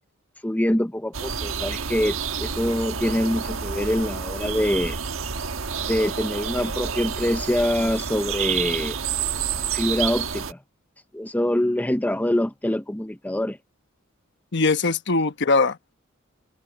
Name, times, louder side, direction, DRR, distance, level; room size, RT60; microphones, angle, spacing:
voice 1, 0.4-5.0 5.9-9.0 9.7-10.6 11.1-13.6, left 1 dB, 10° left, 0.6 m, -24 dB
sound 1, 1.1-10.5, right 6 dB, 80° right, 1.4 m, -29 dB
voice 2, 14.5-15.9, left 3 dB, 60° left, 1.1 m, -21 dB
head